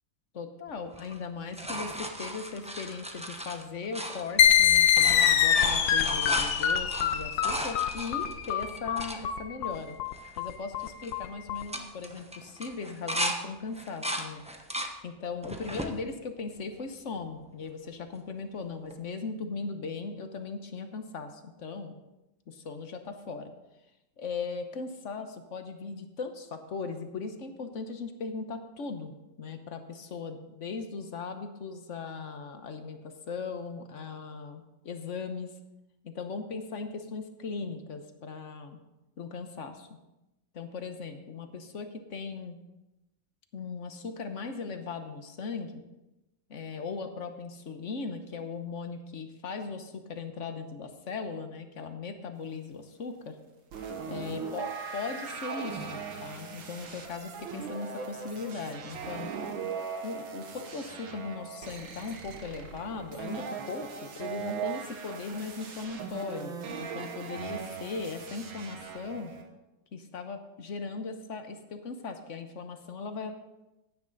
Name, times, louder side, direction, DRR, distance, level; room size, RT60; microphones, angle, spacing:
voice 1, 0.3-10.0 10.4-14.4 15.0-21.9 22.5-23.5 24.2-35.5 36.0-38.8 39.2-39.9 40.5-42.6 43.5-45.7 46.5-53.4 54.1-59.3 60.0-69.3 69.9-73.4, left 4 dB, 45° left, 7 dB, 1.2 m, -38 dB
sound 1, 0.9-4.6 4.8-9.2 9.8-9.9 10.1-10.5 10.8-11.1 11.5-13.4 13.7-14.9 15.4-15.9 16.6-17.3 18.9-19.0, right 1 dB, 10° right, 0.4 m, -36 dB
sound 2, 4.4-11.6, left 9 dB, 75° left, 1.4 m, -24 dB
sound 3, 53.7-69.4, right 6 dB, 90° right, 2.2 m, -39 dB
15.5 x 10.0 x 4.0 m, 0.97 s
omnidirectional pair, 2.1 m